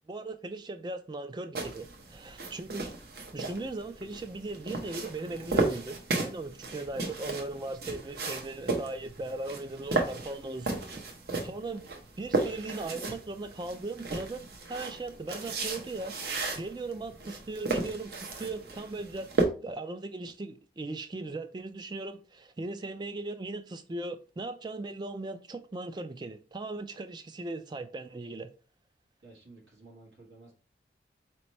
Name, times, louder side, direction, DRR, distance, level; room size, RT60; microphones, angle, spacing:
voice 1, 0.1-2.9 3.3-11.0 11.4-11.8 12.2-16.2 16.6-19.3 19.6-28.5, right 2 dB, 25° right, 0.3 m, -38 dB
sound 1, 1.5-19.4, right 3 dB, 55° right, 0.7 m, -34 dB
voice 2, 29.2-30.5, right 2 dB, 80° right, 1.3 m, -53 dB
4.3 x 2.9 x 3.1 m
head